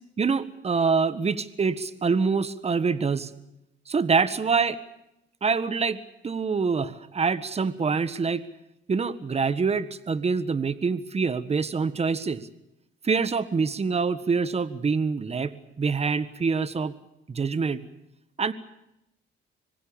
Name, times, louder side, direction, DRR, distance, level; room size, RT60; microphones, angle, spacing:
voice 1, 0.2-3.3 3.9-4.8 5.4-8.5 8.9-12.5 13.0-16.9 17.3-17.8 18.4-18.5, right 5 dB, 30° right, 14 dB, 1.6 m, -25 dB
25.5 x 22.5 x 7.2 m, 0.85 s
cardioid pair, 90°, 20 cm